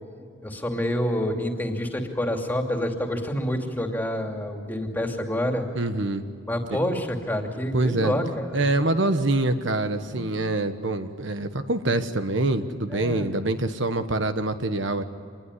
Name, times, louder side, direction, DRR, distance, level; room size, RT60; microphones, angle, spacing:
voice 1, 0.4-5.7 6.5-8.7 10.1-10.3 12.9-13.3, left 1 dB, 10° left, 3 dB, 2.7 m, -28 dB
voice 2, 5.7-6.2 6.7-6.8 7.7-8.1 8.5-15.0, right 2 dB, 60° right, 8 dB, 1.3 m, -25 dB
27.0 x 21.0 x 9.9 m, 2.3 s
head